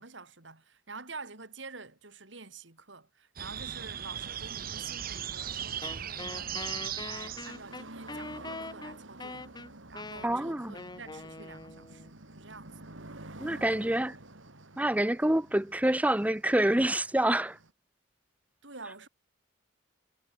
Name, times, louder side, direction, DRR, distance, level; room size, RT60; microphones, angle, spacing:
voice 1, 0.0-6.8 7.0-9.5 9.9-12.8 18.6-19.1, right 4 dB, 70° right, 3.9 m, -48 dB
sound 1, 3.4-7.8, right 9 dB, 50° right, 1.0 m, -37 dB
sound 2, 3.7-17.7, right 2 dB, 85° right, 3.7 m, -50 dB
Wind instrument woodwind instrument, 5.8-12.1, left 3 dB, 20° left, 1.0 m, -43 dB
voice 2, 10.2-10.7 13.4-14.2 14.8-17.6, right 1 dB, 10° right, 0.7 m, -27 dB
head